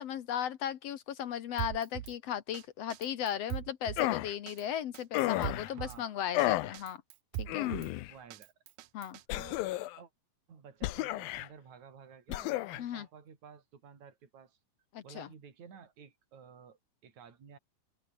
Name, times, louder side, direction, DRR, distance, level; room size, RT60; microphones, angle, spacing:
voice 1, 0.0-7.0 7.4-7.7 8.9-9.2 12.8-13.1 14.9-15.3, left 9 dB, 65° left, 1.7 m, -36 dB
Drum kit, 1.6-2.2 2.5-2.6 2.9-4.1 4.5-4.6 4.9-6.0 6.4-6.5 6.7-7.9 8.3-9.2, right 14 dB, 70° right, 2.1 m, -40 dB
sound 1, 4.0-4.3 5.1-5.7 6.3-6.8 7.5-8.1 9.3-10.0 10.8-11.5 12.3-12.8, left 16 dB, 85° left, 2.7 m, -32 dB
voice 2, 5.6-6.3 7.6-8.5 9.3-9.6 10.0-10.1 10.5-14.6 15.0-17.6, right 6 dB, 55° right, 5.0 m, -53 dB
omnidirectional pair, 4.1 m